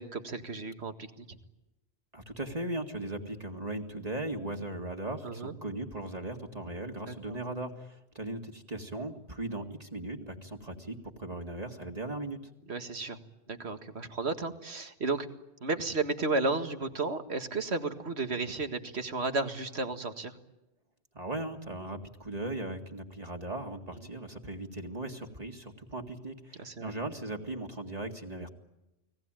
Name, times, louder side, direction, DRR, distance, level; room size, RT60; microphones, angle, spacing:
voice 1, 0.0-1.4 5.2-5.5 7.1-7.4 12.7-13.2 13.5-15.3 15.6-20.3 26.6-26.9, right 3 dB, 80° right, 8 dB, 2.1 m, -33 dB
voice 2, 2.1-12.4 21.1-28.5, right 2 dB, 40° right, 3 dB, 2.2 m, -38 dB
29.5 x 20.5 x 9.0 m, 0.95 s
omnidirectional pair, 1.1 m